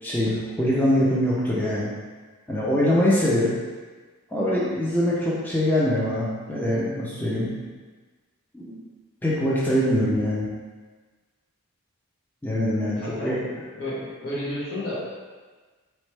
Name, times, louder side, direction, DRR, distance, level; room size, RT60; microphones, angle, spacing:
voice 1, 0.0-1.9 2.5-3.5 4.3-7.5 8.5-8.7 9.2-10.5 12.4-13.4, left 1 dB, 10° left, -7 dB, 0.6 m, -23 dB
voice 2, 12.8-15.0, left 1 dB, 65° left, -7 dB, 1.3 m, -32 dB
4.4 x 3.1 x 3.2 m, 1.4 s
head